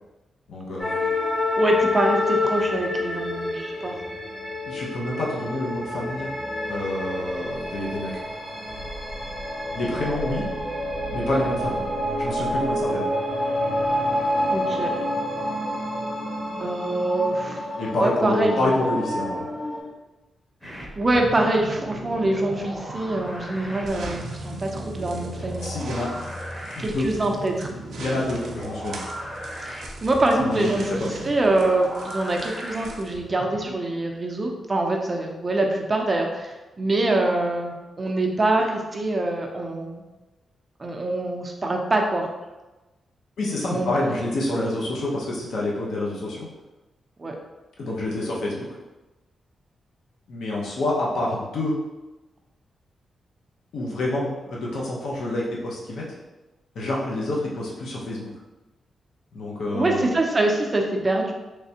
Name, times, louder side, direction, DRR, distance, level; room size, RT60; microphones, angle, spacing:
voice 1, 0.5-1.0 4.7-6.3 6.7-8.1 9.7-10.4 11.1-11.8 12.2-13.0 17.8-19.4 25.6-26.1 26.8-27.1 28.0-29.0 30.4-30.7 43.4-46.5 47.8-48.8 50.3-51.7 53.7-56.0 56.7-58.3 59.3-60.1, left 1 dB, 80° left, -4 dB, 0.8 m, -27 dB
sound 1, 0.8-19.8, left 1 dB, 40° left, 1.5 m, -28 dB
voice 2, 1.6-4.0 14.5-14.9 16.6-17.7 18.0-18.7 21.0-25.7 26.8-27.7 29.6-40.0 40.8-42.3 43.6-43.9 47.2-47.3 59.7-61.3, right 2 dB, 25° right, 1 dB, 0.5 m, -24 dB
sound 2, 20.6-33.7, right 1 dB, 10° left, 1.0 m, -37 dB
sound 3, 23.8-33.2, right 1 dB, 80° right, 0.5 m, -40 dB
3.3 x 3.2 x 2.8 m, 1.1 s
wide cardioid pair, 135°, 0 cm